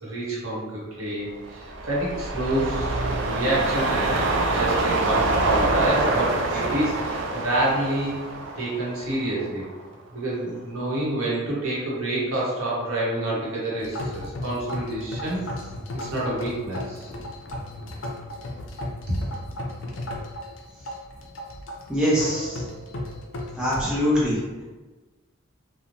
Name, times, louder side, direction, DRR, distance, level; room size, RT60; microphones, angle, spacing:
voice 1, 0.0-8.1 8.6-9.7 10.1-15.4 15.9-17.1 19.1-19.2, right 1 dB, 75° right, -6 dB, 0.9 m, -28 dB
sound 1, 1.4-9.8 10.2-10.3, right 2 dB, 60° right, 0.3 m, -25 dB
sound 2, 13.8-23.9, left 1 dB, 65° left, 0.4 m, -35 dB
voice 2, 21.9-22.6 23.6-24.4, equal, 5° right, -8 dB, 0.5 m, -23 dB
3.0 x 2.0 x 2.5 m, 1.2 s
head